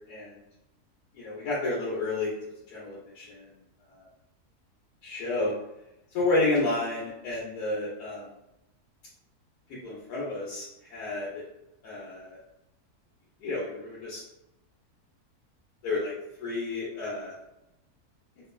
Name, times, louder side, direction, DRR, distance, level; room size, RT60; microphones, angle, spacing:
voice 1, 0.1-0.4 1.1-2.3 2.7-3.5 3.9-4.0 5.0-5.5 6.1-8.3 9.8-11.4 11.8-12.4 13.4-14.2 15.8-16.1 16.4-17.3, left 2 dB, 90° left, -5 dB, 1.2 m, -30 dB
3.0 x 2.0 x 2.2 m, 0.89 s
omnidirectional pair, 1.6 m